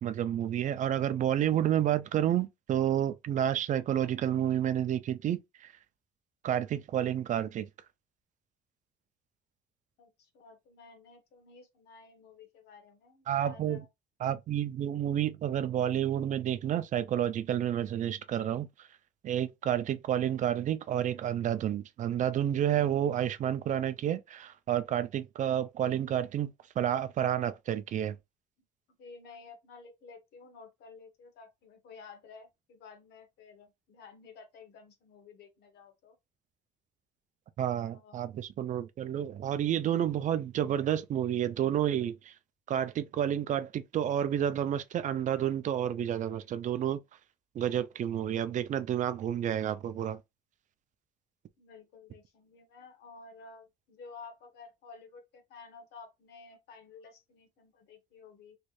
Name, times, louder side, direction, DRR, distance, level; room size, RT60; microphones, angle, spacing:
voice 1, 0.0-5.7 6.4-7.7 13.3-13.8 14.2-18.9 19.2-26.5 26.8-28.2 37.6-42.3 42.7-47.0 47.5-50.2, right 10 dB, 50° right, 0.4 m, -30 dB
voice 2, 10.0-13.9 29.0-36.2 37.9-38.3 51.6-58.6, left 4 dB, 75° left, 1.1 m, -52 dB
3.2 x 3.1 x 2.5 m
cardioid pair, 110°, 17 cm